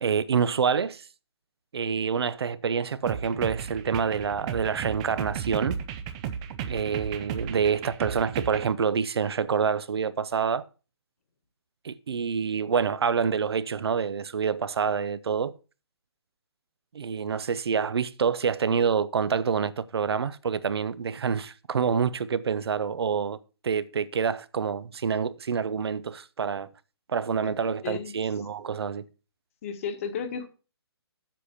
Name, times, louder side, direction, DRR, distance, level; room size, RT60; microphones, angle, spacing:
voice 1, 0.0-1.1 1.7-5.8 6.7-10.6 11.8-15.5 16.9-23.4 23.6-26.7 27.1-29.1, right 6 dB, 70° right, 0.7 m, -27 dB
sound 1, 3.1-8.7, right 8 dB, 15° right, 0.4 m, -35 dB
voice 2, 27.8-28.1 29.6-30.5, left 6 dB, 30° left, 1.3 m, -33 dB
7.6 x 6.7 x 5.7 m
hypercardioid pair, 165°, 14 cm